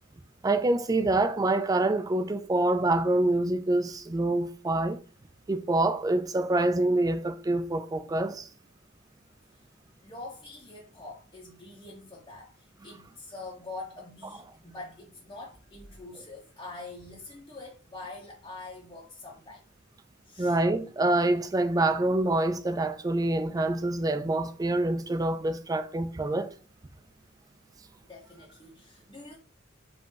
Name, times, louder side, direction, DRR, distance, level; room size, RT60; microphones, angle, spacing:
voice 1, 0.4-5.0 5.5-8.5 20.4-26.5, right 2 dB, 20° right, 0.3 m, -26 dB
voice 2, 10.0-19.6 20.2-20.6 28.1-29.4, left 2 dB, 20° left, 0.8 m, -44 dB
5.0 x 2.5 x 3.8 m
head